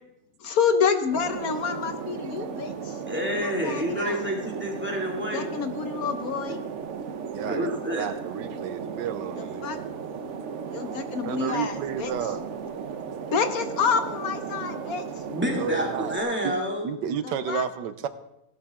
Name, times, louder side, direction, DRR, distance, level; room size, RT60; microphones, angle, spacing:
voice 1, 0.4-2.9 3.4-4.2 5.3-6.6 9.6-9.8 10.7-12.1 13.3-15.0 17.5-17.6, left 6 dB, 60° left, 9 dB, 1.3 m, -27 dB
sound 1, 1.1-16.2, right 6 dB, 55° right, 1.0 m, -35 dB
voice 2, 3.1-5.5 7.4-8.1 15.3-16.9, equal, 5° right, -1 dB, 2.4 m, -28 dB
voice 3, 7.3-10.0 10.9-12.4 15.5-16.1 16.4-16.5 16.8-18.1, right 8 dB, 90° right, 12 dB, 1.4 m, -32 dB
16.5 x 11.5 x 3.7 m, 0.85 s
omnidirectional pair, 1.8 m